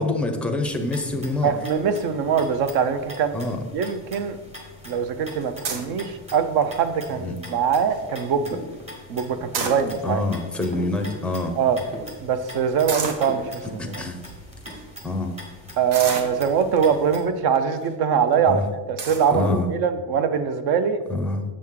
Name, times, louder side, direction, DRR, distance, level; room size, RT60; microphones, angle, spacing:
voice 1, 0.0-1.5 3.3-3.6 7.2-7.4 10.0-11.6 13.8-14.2 15.0-15.4 18.5-18.6 19.3-19.7 21.1-21.4, left 2 dB, 5° left, 4 dB, 0.5 m, -26 dB
sound 1, 0.6-17.2, left 1 dB, 15° right, 1.0 m, -43 dB
voice 2, 1.4-3.4 3.7-4.4 4.9-8.6 9.1-10.2 11.6-11.8 12.2-14.0 15.8-18.6 18.9-21.0, right 7 dB, 60° right, 10 dB, 0.7 m, -23 dB
sound 2, 5.6-6.0 6.6-6.9 7.4-7.5 7.7-8.0 9.3-10.2 11.0-11.1 11.3-11.4 12.9-13.3 14.0-14.1 14.6-14.8 15.9-16.8 17.6-17.9 18.3-18.4 19.0-19.3, right 5 dB, 80° right, 1.1 m, -30 dB
sound 3, 8.5-9.2 9.6-11.5 11.8-12.7 13.3-14.2 14.5-15.1, right 1 dB, 45° right, 1.9 m, -40 dB
7.5 x 6.2 x 3.7 m, 1.3 s
cardioid pair, 165°, 42 cm